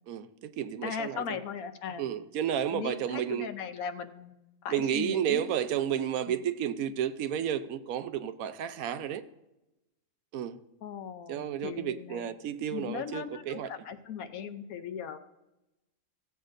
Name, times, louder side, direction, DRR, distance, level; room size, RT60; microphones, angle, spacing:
voice 1, 0.1-1.4 2.0-3.5 4.7-9.2 10.3-10.6 11.3-13.7, right 9 dB, 75° right, 1.0 m, -32 dB
voice 2, 0.8-2.1 2.7-4.3 4.6-5.5 6.3-6.4 10.8-12.3 12.7-15.3, left 7 dB, 75° left, 1.2 m, -38 dB
15.5 x 8.0 x 2.5 m
omnidirectional pair, 1.5 m